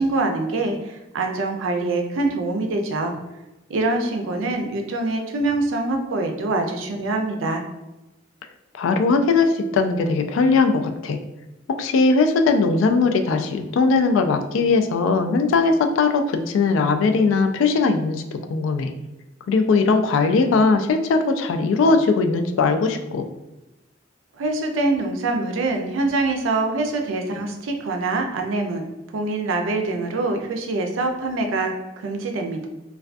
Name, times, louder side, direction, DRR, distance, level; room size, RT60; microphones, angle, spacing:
voice 1, 0.0-3.1 3.7-7.6 24.4-28.9 29.1-32.7, right 2 dB, 85° right, 3 dB, 0.4 m, -24 dB
voice 2, 8.8-11.2 11.7-18.9 19.5-23.2, left 4 dB, 80° left, 6 dB, 0.3 m, -19 dB
2.2 x 2.2 x 2.5 m, 1.0 s
head